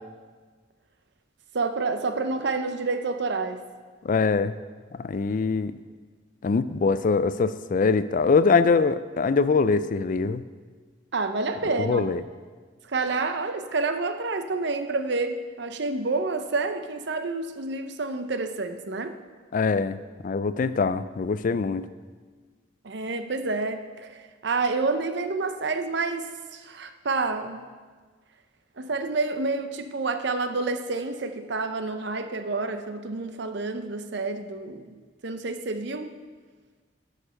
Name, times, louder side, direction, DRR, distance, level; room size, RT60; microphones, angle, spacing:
voice 1, 1.5-3.6 11.1-12.1 12.9-19.1 22.8-27.6 28.8-34.9 35.2-36.1, right 3 dB, 60° right, 9 dB, 0.7 m, -29 dB
voice 2, 4.0-4.5 5.0-5.7 6.4-10.4 11.9-12.2 19.5-20.0 20.2-21.9, left 4 dB, 45° left, 14 dB, 0.4 m, -23 dB
9.7 x 6.6 x 6.3 m, 1.5 s
head